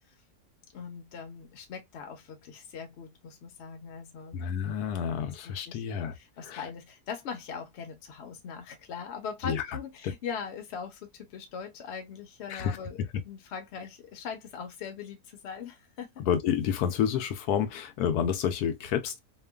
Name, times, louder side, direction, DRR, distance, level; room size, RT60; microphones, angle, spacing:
voice 1, 0.7-4.4 5.7-5.8 6.1-13.0 13.2-16.2, left 6 dB, 55° left, 0.9 m, -40 dB
voice 2, 4.3-6.1 6.5-6.6 9.4-9.8 12.5-13.1 16.2-19.2, left 8 dB, 85° left, 1.1 m, -29 dB
3.0 x 2.2 x 2.2 m
omnidirectional pair, 1.6 m